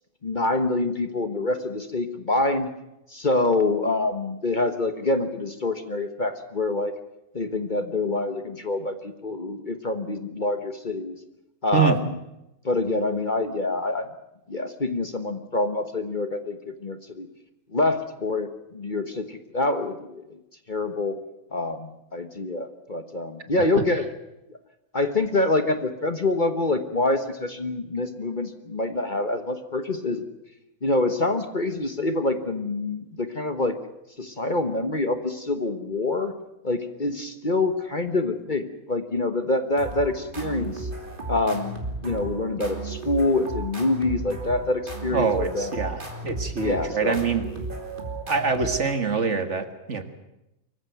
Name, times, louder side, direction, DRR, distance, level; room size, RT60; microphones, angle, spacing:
voice 1, 0.2-2.7 3.1-6.9 7.3-11.2 11.6-12.2 12.6-14.1 14.5-17.3 17.7-20.2 20.7-21.2 21.5-24.0 24.5-24.6 24.9-30.2 30.8-33.8 34.2-36.3 36.6-40.9 41.3-45.7 46.6-47.2, left 2 dB, 35° left, 8 dB, 1.4 m, -26 dB
sound 1, 39.8-49.3, right 3 dB, 35° right, 3.2 m, -35 dB
voice 2, 45.1-47.5 48.3-50.0, right 5 dB, 55° right, 8 dB, 2.1 m, -25 dB
24.5 x 15.0 x 9.3 m, 0.90 s
omnidirectional pair, 1.5 m